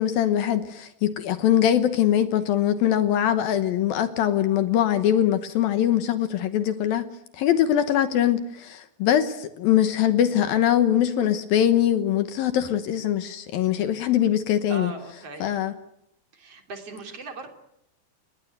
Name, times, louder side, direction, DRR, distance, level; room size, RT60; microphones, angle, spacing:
voice 1, 0.0-7.1 7.3-14.9 15.4-15.7, left 10 dB, 70° left, 11 dB, 2.5 m, -22 dB
voice 2, 14.7-15.5 16.3-17.5, right 3 dB, 35° right, 5 dB, 3.7 m, -38 dB
29.0 x 21.0 x 7.9 m, 0.78 s
omnidirectional pair, 5.0 m